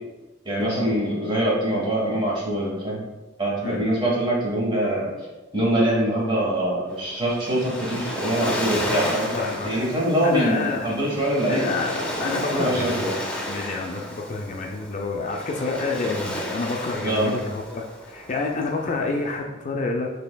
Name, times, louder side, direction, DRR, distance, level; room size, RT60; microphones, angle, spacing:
voice 1, 0.4-3.1 3.4-5.1 5.5-11.7 12.5-13.2 17.0-17.4, right 1 dB, 25° right, -5 dB, 1.2 m, -24 dB
voice 2, 3.6-3.9 9.3-9.7 10.2-10.9 11.5-13.1 13.5-20.1, left 3 dB, 40° left, 1 dB, 0.3 m, -28 dB
Waves surf, 6.9-19.3, equal, 5° left, 0.7 m, -32 dB
5.5 x 3.3 x 2.2 m, 1.1 s
head